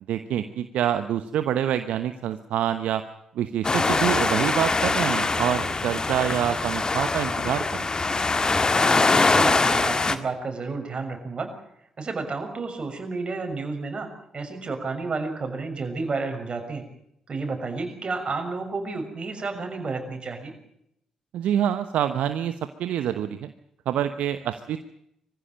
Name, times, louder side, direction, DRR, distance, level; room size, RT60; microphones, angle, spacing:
voice 1, 0.1-3.0 3.3-7.9 21.3-23.5 23.9-24.8, right 10 dB, 70° right, 10 dB, 1.0 m, -26 dB
sound 1, 3.6-10.2, left 3 dB, 30° left, 1.9 m, -23 dB
voice 2, 9.1-11.5 12.0-16.8 17.3-20.5, right 3 dB, 45° right, 5 dB, 6.4 m, -31 dB
23.5 x 15.5 x 9.1 m, 0.76 s
hypercardioid pair, 45°, 2 cm